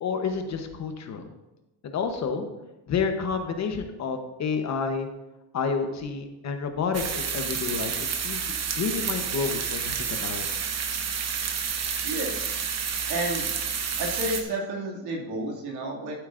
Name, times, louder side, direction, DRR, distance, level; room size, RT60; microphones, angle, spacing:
voice 1, 0.0-1.3 1.8-2.5 2.9-5.1 5.5-10.5, left 5 dB, 40° left, 6 dB, 1.0 m, -30 dB
sound 1, 6.9-14.4, right 6 dB, 40° right, 1.0 m, -30 dB
voice 2, 12.0-12.5 13.1-13.5 14.0-16.1, right 1 dB, 70° right, -1 dB, 2.4 m, -31 dB
12.0 x 8.1 x 2.6 m, 1.0 s
cardioid pair, 135°, 41 cm